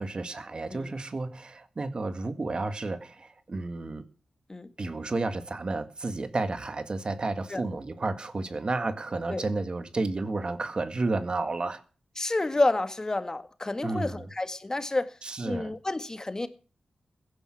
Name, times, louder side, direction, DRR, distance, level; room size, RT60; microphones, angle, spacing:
voice 1, 0.0-4.1 4.8-11.8 13.8-14.3 15.2-15.8, right 3 dB, 45° right, 1.8 m, -31 dB
voice 2, 12.2-15.1 15.4-16.5, left 2 dB, 30° left, 1.7 m, -29 dB
16.0 x 10.5 x 6.3 m
cardioid pair, 60°, 2 cm